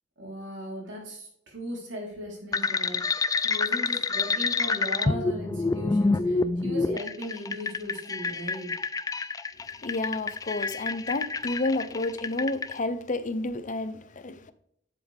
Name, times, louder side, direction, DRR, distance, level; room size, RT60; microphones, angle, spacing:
voice 1, 0.2-8.8, equal, 65° right, 4.0 m, -38 dB
sound 1, 2.5-12.7, left 3 dB, 20° left, 0.3 m, -28 dB
voice 2, 9.8-14.5, left 2 dB, 40° left, 0.7 m, -30 dB
10.5 x 7.3 x 3.5 m
head